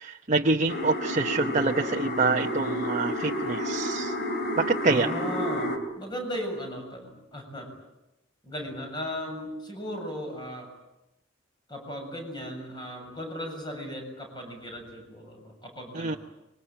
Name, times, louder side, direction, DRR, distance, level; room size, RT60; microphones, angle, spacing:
voice 1, 0.0-4.1 4.6-5.1 15.9-16.2, right 3 dB, 40° right, 3 dB, 1.0 m, -26 dB
sound 1, 0.7-5.8, equal, 55° left, 3.5 m, -30 dB
voice 2, 4.9-7.7 8.4-10.7 11.7-16.2, equal, 25° left, 3 dB, 7.6 m, -36 dB
26.0 x 23.5 x 9.1 m, 0.93 s
head